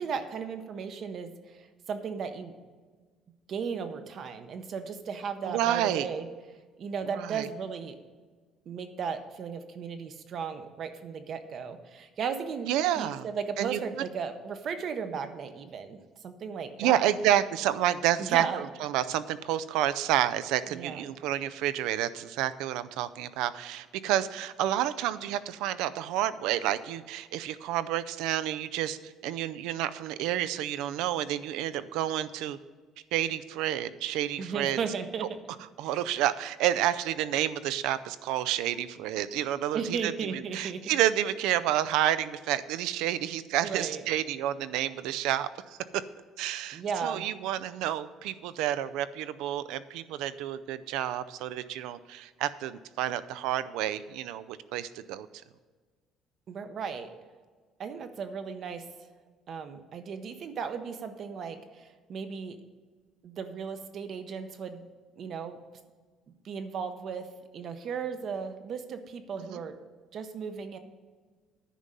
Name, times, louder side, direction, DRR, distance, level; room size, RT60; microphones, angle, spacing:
voice 1, 0.0-2.5 3.5-6.3 6.8-8.0 8.7-12.7 12.9-16.0 16.2-17.1 18.2-18.6 20.7-21.0 34.4-35.4 39.7-40.9 43.6-44.0 46.7-47.3 56.5-57.1 57.8-58.8 59.5-62.6 63.2-64.9 65.2-65.6 66.4-69.8 70.1-70.8, right 6 dB, 40° right, 9 dB, 0.7 m, -36 dB
voice 2, 5.4-6.1 7.1-7.5 12.7-13.3 13.6-13.8 16.8-32.6 33.1-34.8 35.8-45.8 46.4-55.3 69.5-69.6, right 12 dB, 85° right, 14 dB, 0.4 m, -29 dB
10.0 x 5.4 x 7.4 m, 1.4 s
cardioid pair, 175°, 0 cm